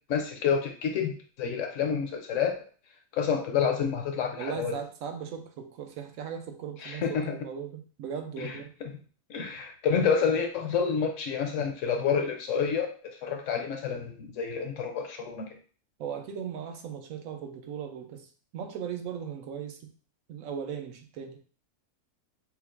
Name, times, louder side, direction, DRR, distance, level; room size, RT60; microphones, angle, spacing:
voice 1, 0.1-1.1 1.4-2.5 3.1-4.7 6.8-7.4 8.4-8.5 8.8-8.9 9.3-15.5, left 6 dB, 70° left, 4 dB, 0.9 m, -28 dB
voice 2, 4.4-8.7 16.0-19.9 20.3-21.4, right 7 dB, 75° right, 5 dB, 1.0 m, -38 dB
5.9 x 2.4 x 2.5 m, 0.41 s
omnidirectional pair, 1.6 m